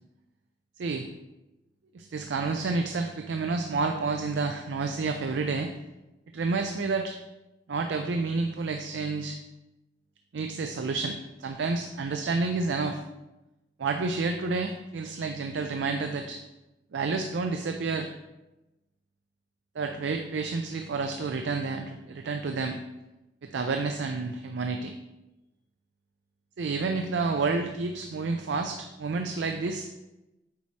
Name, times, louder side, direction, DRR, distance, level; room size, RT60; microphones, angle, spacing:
voice 1, 1.9-5.7 6.3-7.2 7.7-9.4 10.3-13.0 13.8-16.4 16.9-18.1 19.8-22.8 23.4-24.9 26.6-29.9, right 4 dB, 75° right, 5 dB, 0.4 m, -29 dB
8.4 x 4.6 x 2.8 m, 0.99 s
head